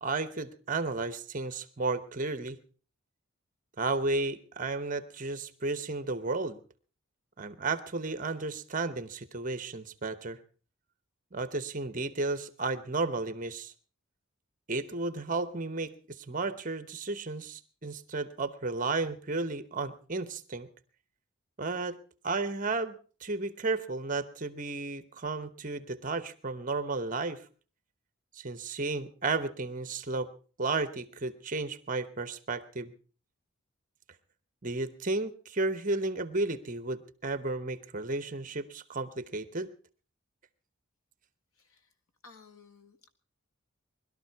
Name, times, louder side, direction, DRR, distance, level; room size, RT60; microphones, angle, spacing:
voice 1, 0.0-2.6 3.8-6.6 7.4-10.4 11.3-13.7 14.7-20.7 21.6-22.0 22.2-27.4 28.4-30.3 30.6-32.9 34.6-39.7, right 3 dB, 35° right, 14 dB, 0.9 m, -33 dB
voice 2, 41.6-41.9 42.2-43.1, left 4 dB, 80° left, 9 dB, 1.7 m, -56 dB
20.5 x 12.5 x 4.6 m, 0.39 s
head